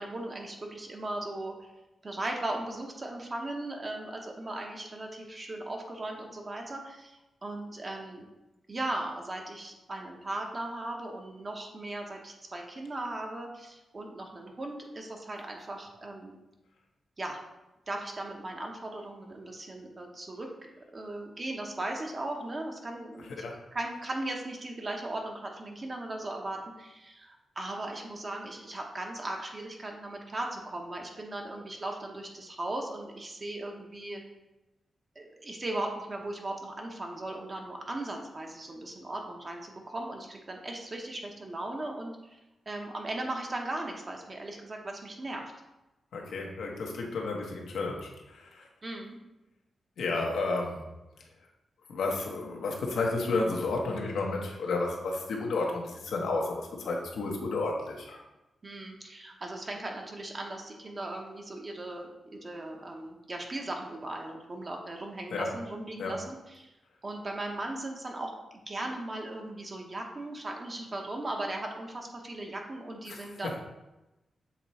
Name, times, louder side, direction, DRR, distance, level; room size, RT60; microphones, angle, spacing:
voice 1, 0.0-1.7 2.0-8.3 8.7-16.4 17.2-17.4 17.9-20.5 20.9-23.4 23.7-34.2 35.1-42.4 42.7-45.4 48.8-49.2 58.6-66.7 67.0-68.3 68.7-73.6, right 2 dB, 35° right, 1 dB, 1.0 m, -38 dB
voice 2, 46.1-48.7 50.0-50.8 51.9-58.2 65.3-65.5 66.0-66.2 73.1-73.2, left 3 dB, 90° left, -1 dB, 1.1 m, -32 dB
7.2 x 3.1 x 4.2 m, 1.0 s
cardioid pair, 90°, 0 cm